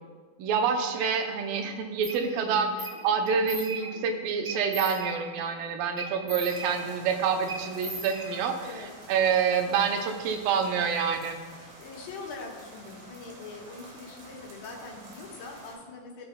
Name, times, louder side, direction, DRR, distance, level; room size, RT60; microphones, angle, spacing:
voice 1, 0.4-2.7 3.0-8.7 9.1-11.4, right 6 dB, 90° right, 5 dB, 2.5 m, -27 dB
sound 1, 2.0-2.2 2.8-3.0 3.3-4.1 4.4-5.5 6.0-7.1 7.5-8.7, right 2 dB, 30° right, 1.6 m, -39 dB
voice 2, 2.2-2.7 8.6-8.9 11.6-16.3, left 3 dB, 90° left, -1 dB, 3.0 m, -42 dB
sound 2, 6.4-15.7, right 1 dB, 70° right, 3.1 m, -49 dB
15.0 x 5.6 x 2.2 m, 1.6 s
omnidirectional pair, 4.0 m